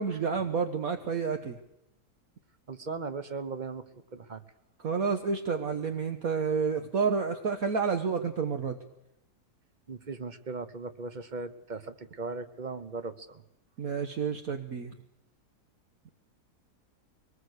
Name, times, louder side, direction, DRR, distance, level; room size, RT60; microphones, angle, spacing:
voice 1, 0.0-1.6 4.8-8.8 13.8-14.9, right 5 dB, 60° right, 6 dB, 1.6 m, -29 dB
voice 2, 2.7-3.8 4.1-4.4 9.9-11.8 12.2-13.4, right 4 dB, 30° right, 11 dB, 1.1 m, -38 dB
23.5 x 19.5 x 8.1 m, 0.83 s
omnidirectional pair, 1.7 m